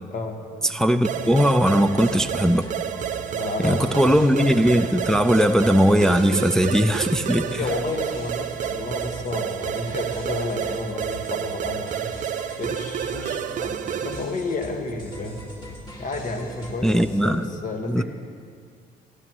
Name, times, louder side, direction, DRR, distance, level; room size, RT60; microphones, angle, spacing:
voice 1, 0.6-2.7 3.6-7.6 16.8-17.4 17.9-18.0, equal, 5° left, 7 dB, 0.4 m, -19 dB
sound 1, 1.0-14.4, right 9 dB, 50° right, 0.5 m, -30 dB
sound 2, 1.1-17.4, equal, 25° left, 2.4 m, -40 dB
voice 2, 3.3-4.0 7.4-12.1 12.6-18.0, left 3 dB, 50° left, 3 dB, 1.6 m, -31 dB
18.5 x 13.5 x 3.0 m, 2.1 s
cardioid pair, 110°, 17 cm